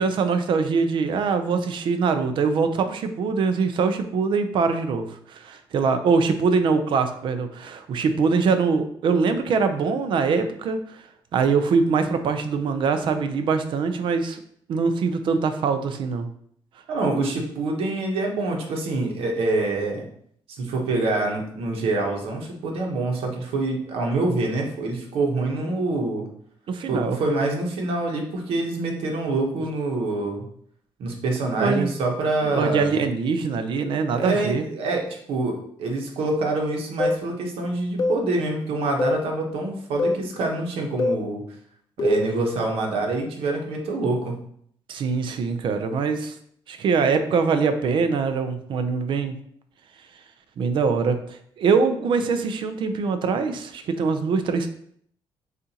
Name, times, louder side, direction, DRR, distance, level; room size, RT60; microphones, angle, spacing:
voice 1, 0.0-11.0 11.3-14.4 14.7-16.3 26.7-27.2 31.6-31.9 32.4-34.6 44.9-46.3 46.7-49.4 50.6-54.7, right 5 dB, 60° right, 8 dB, 0.5 m, -23 dB
voice 2, 16.9-20.1 20.5-26.3 26.9-30.5 31.0-33.0 34.1-41.4 42.0-44.4, right 2 dB, 85° right, 1 dB, 0.9 m, -26 dB
sound 1, 37.0-37.2 38.0-38.2 39.0-39.2 40.0-40.2 41.0-41.2 42.0-42.3, left 2 dB, 45° left, 0.5 m, -23 dB
6.6 x 2.5 x 2.8 m, 0.65 s
cardioid pair, 135°, 9 cm